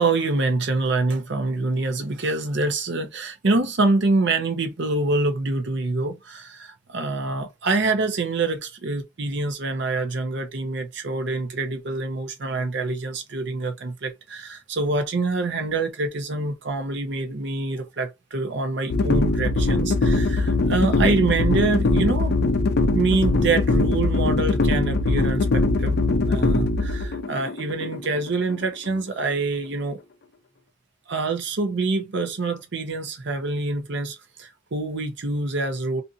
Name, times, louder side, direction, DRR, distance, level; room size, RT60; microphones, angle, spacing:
voice 1, 0.0-22.3 22.9-30.0 31.1-36.0, right 3 dB, 65° right, 0.7 m, -25 dB
sound 1, 18.9-29.0, left 2 dB, 55° left, 0.4 m, -22 dB
2.6 x 2.5 x 2.5 m
head